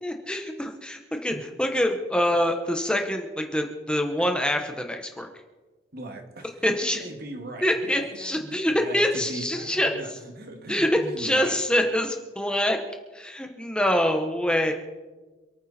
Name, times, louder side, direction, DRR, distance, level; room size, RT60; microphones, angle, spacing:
voice 1, 0.0-5.3 6.6-7.0 7.6-9.9 10.7-10.9 11.2-12.8 13.1-14.7, left 1 dB, 5° left, 4 dB, 1.1 m, -25 dB
voice 2, 5.9-11.6, right 1 dB, 55° right, 4 dB, 2.3 m, -39 dB
27.0 x 9.4 x 4.3 m, 1.3 s
head